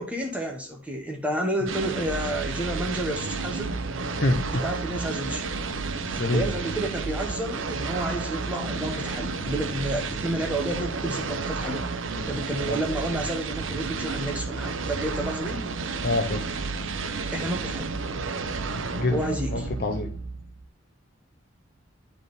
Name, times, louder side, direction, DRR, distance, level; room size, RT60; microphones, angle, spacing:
voice 1, 0.0-3.8 4.5-5.5 6.0-11.9 12.3-15.6 17.3-18.0 19.1-19.7, right 1 dB, 5° right, 1 dB, 0.9 m, -30 dB
sound 1, 1.7-20.7, right 4 dB, 70° right, 0.7 m, -31 dB
sound 2, 2.4-19.3, left 3 dB, 75° left, 0.8 m, -45 dB
voice 2, 4.1-4.6 6.2-6.5 12.7-12.8 16.0-16.6 18.7-19.2 19.5-20.1, left 2 dB, 45° left, 5 dB, 0.7 m, -26 dB
10.0 x 3.5 x 3.9 m, 0.37 s
head